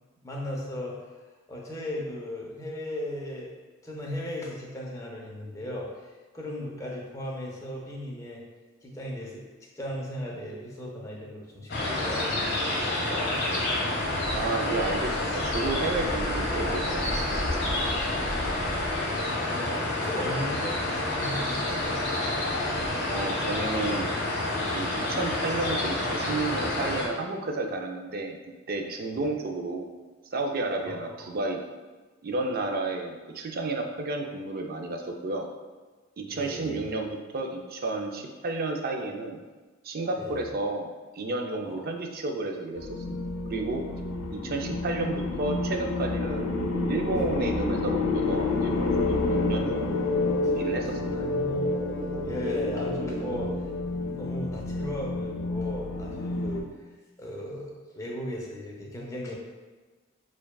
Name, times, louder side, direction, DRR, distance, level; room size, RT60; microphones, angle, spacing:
voice 1, 0.2-1.0 1.5-3.5 3.8-8.4 8.8-9.4 9.8-13.3 17.3-17.5 18.7-22.1 29.1-29.3 30.8-31.4 36.3-36.9 40.2-40.5 41.6-41.8 44.5-44.6 50.9-51.7 52.2-53.5 54.1-56.6 57.2-59.4, left 1 dB, 15° left, -3 dB, 0.7 m, -37 dB
sound 1, 11.7-27.1, left 1 dB, 60° left, 1.0 m, -28 dB
voice 2, 14.3-17.7 23.0-24.1 24.7-28.4 28.7-29.9 30.3-31.6 32.2-35.5 36.2-39.4 39.8-40.9 41.1-43.2 43.5-43.8 44.3-50.1 50.6-51.1, right 2 dB, 45° right, 3 dB, 0.4 m, -31 dB
sound 2, 42.8-56.6, left 3 dB, 80° left, 0.5 m, -30 dB
sound 3, 46.2-53.5, right 1 dB, 20° right, 1.2 m, -35 dB
6.7 x 2.3 x 2.3 m, 1.3 s
head